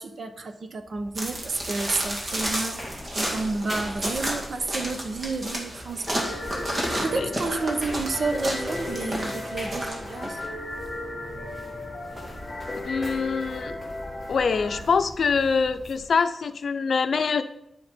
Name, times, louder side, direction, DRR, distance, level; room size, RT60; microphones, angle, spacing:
voice 1, 0.0-6.4 6.7-10.4, right 3 dB, 55° right, 8 dB, 0.9 m, -30 dB
sound 1, 0.8-16.1, equal, 15° right, 2.7 m, -41 dB
sound 2, 1.2-10.5, right 1 dB, 35° right, 2.3 m, -32 dB
sound 3, 6.1-14.8, left 2 dB, 20° left, 2.8 m, -36 dB
voice 2, 12.8-13.8 14.3-17.4, left 5 dB, 65° left, 10 dB, 0.6 m, -24 dB
10.5 x 7.0 x 5.2 m, 0.81 s
wide cardioid pair, 150°, 0 cm